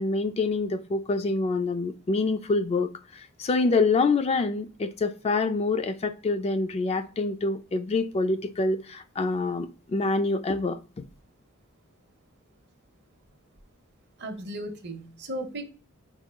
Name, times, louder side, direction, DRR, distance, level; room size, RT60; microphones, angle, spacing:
voice 1, 0.0-11.1, left 3 dB, 30° left, 0.3 m, -26 dB
voice 2, 14.2-15.6, right 1 dB, 55° right, 0.9 m, -35 dB
4.5 x 3.7 x 2.2 m
head